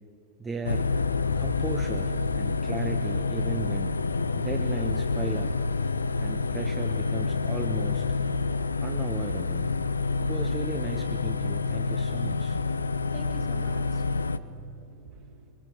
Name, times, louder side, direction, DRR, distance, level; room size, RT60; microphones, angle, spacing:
voice 1, 0.4-0.9 1.3-3.9 4.4-5.6 6.2-8.1 8.8-9.7 10.2-12.6, right 4 dB, 15° right, 4 dB, 1.2 m, -36 dB
sound 1, 0.6-14.4, left 4 dB, 75° left, 0.6 m, -28 dB
voice 2, 12.9-15.5, right 7 dB, 45° right, 1 dB, 3.4 m, -49 dB
23.0 x 21.0 x 7.7 m, 2.8 s
figure-of-eight pair, 90°, 0 cm